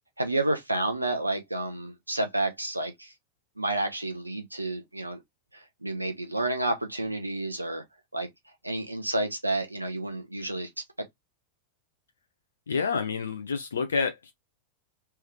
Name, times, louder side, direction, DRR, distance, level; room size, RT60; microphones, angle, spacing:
voice 1, 0.2-3.1 3.6-5.2 5.5-7.8 8.1-8.3 8.6-10.8, right 2 dB, 85° right, 0.8 m, -30 dB
voice 2, 12.7-14.3, left 5 dB, 70° left, 0.6 m, -28 dB
3.4 x 3.4 x 3.0 m
figure-of-eight pair, 90°, 0 cm